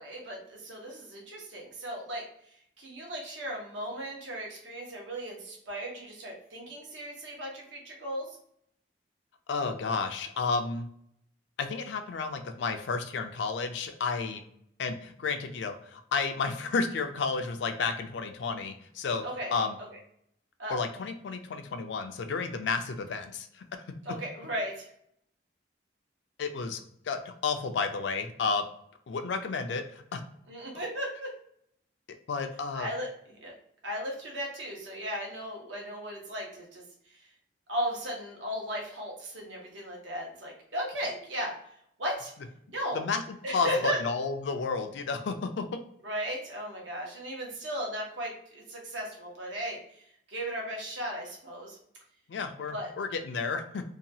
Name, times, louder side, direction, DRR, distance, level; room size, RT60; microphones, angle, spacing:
voice 1, 0.0-2.2 2.8-8.3 19.2-19.5 20.6-20.8 24.0-24.9 30.5-31.3 32.7-33.5 33.8-36.8 37.1-37.2 37.7-41.5 42.0-42.3 42.7-43.1 43.4-44.0 46.0-51.8 52.7-52.9, equal, 85° right, -1 dB, 0.9 m, -36 dB
voice 2, 9.5-10.9 11.6-14.4 14.8-19.2 19.5-19.8 20.7-23.6 26.4-28.7 29.1-30.2 32.3-32.9 42.9-43.2 43.5-45.7 52.3-53.8, left 4 dB, 75° left, 7 dB, 0.4 m, -31 dB
2.8 x 2.2 x 2.7 m, 0.70 s
head